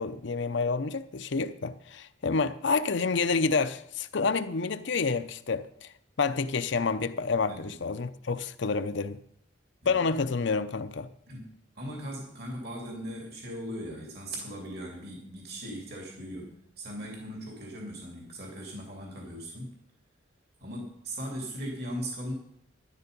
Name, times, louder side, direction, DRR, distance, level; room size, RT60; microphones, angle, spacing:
voice 1, 0.0-5.9 6.2-9.2 9.9-11.1, left 4 dB, 65° left, 0.7 m, -28 dB
voice 2, 11.3-19.7 20.6-22.3, equal, 55° right, 3.1 m, -39 dB
12.5 x 11.0 x 5.3 m
head